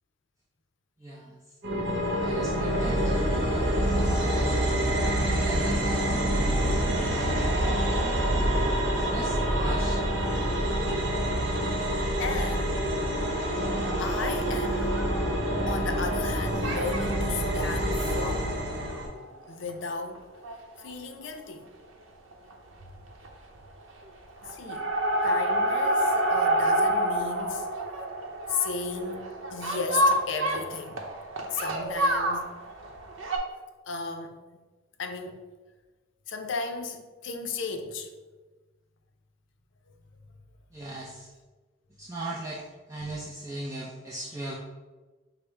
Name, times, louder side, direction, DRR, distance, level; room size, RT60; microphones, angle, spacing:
voice 1, 1.0-1.4 2.2-3.2 4.2-4.6 5.0-6.6 6.9-7.3 7.8-8.2 8.9-10.0 40.7-41.3 42.0-44.5, right 2 dB, 15° right, 0.4 m, -39 dB
sound 1, 1.6-19.1, right 1 dB, 60° right, 0.9 m, -26 dB
voice 2, 12.2-12.8 14.0-15.0 15.7-18.6 19.5-20.3 20.8-21.7 24.4-24.9 25.2-27.7 28.5-31.1 31.5-32.5 33.9-34.4 35.0-35.4 36.3-38.1, left 4 dB, 70° left, 0.5 m, -35 dB
sound 2, 14.7-16.3 16.6-17.2 17.7-19.7 20.2-20.3 20.4-20.5 20.8-20.9 22.3-22.5 22.8-23.3 23.6-24.1 24.4-33.4, right 1 dB, 85° right, 0.7 m, -28 dB
5.2 x 2.0 x 4.4 m
head